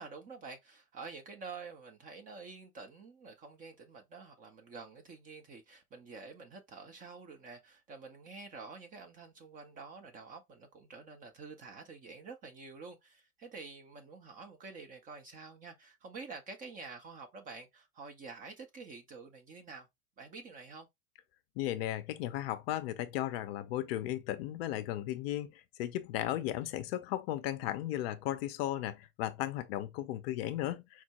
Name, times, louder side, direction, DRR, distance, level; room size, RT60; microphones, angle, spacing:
voice 1, 0.0-19.9 20.2-20.9, right 4 dB, 20° right, 0.4 m, -48 dB
voice 2, 21.6-31.0, left 13 dB, 45° left, 0.5 m, -35 dB
4.5 x 2.0 x 2.9 m
hypercardioid pair, 95°, 45 cm